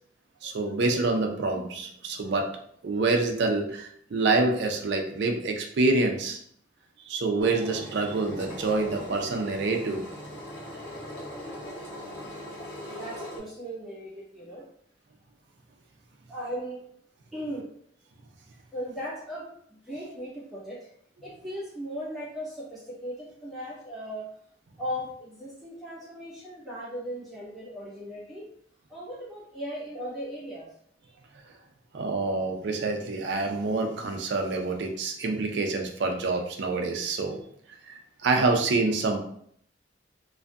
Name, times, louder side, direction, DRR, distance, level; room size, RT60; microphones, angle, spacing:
voice 1, 0.4-2.5 2.8-6.4 7.1-10.0 31.9-37.4 37.8-39.2, right 3 dB, 70° right, 3 dB, 0.4 m, -27 dB
Engine, 7.4-13.4, left 1 dB, 85° left, 0.9 m, -40 dB
voice 2, 12.9-14.6 16.3-16.8 17.3-17.7 18.5-20.9 21.2-24.3 24.8-28.5 28.9-30.7, equal, ahead, -11 dB, 1.2 m, -37 dB
2.5 x 2.4 x 2.2 m, 0.66 s
head